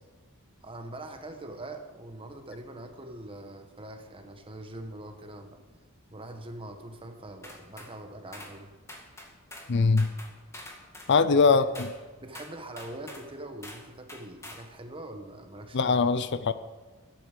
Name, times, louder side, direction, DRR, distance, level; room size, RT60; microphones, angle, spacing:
voice 1, 0.6-5.6 6.1-8.7 11.3-11.6 12.2-16.0, right 1 dB, 25° right, 5 dB, 1.4 m, -43 dB
sound 1, 7.4-7.9 8.3-8.6 8.9-9.7 10.0-11.1 11.7-12.0 12.3-13.3 13.6-13.8 14.1-14.7, left 1 dB, 15° left, 2.0 m, -45 dB
voice 2, 9.7-10.1 11.1-11.9 15.7-16.5, left 4 dB, 55° left, 14 dB, 0.6 m, -22 dB
12.5 x 11.0 x 6.8 m, 1.3 s
head